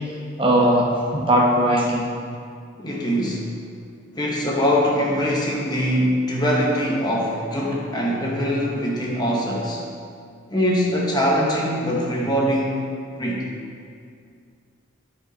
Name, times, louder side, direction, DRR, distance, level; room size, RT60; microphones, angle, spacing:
voice 1, 0.4-2.1, right 1 dB, 25° right, -3 dB, 0.9 m, -19 dB
voice 2, 2.8-3.6 4.1-9.8 10.5-12.8 13.2-13.5, equal, 20° left, -3 dB, 1.0 m, -22 dB
13.0 x 5.2 x 4.0 m, 2.3 s
head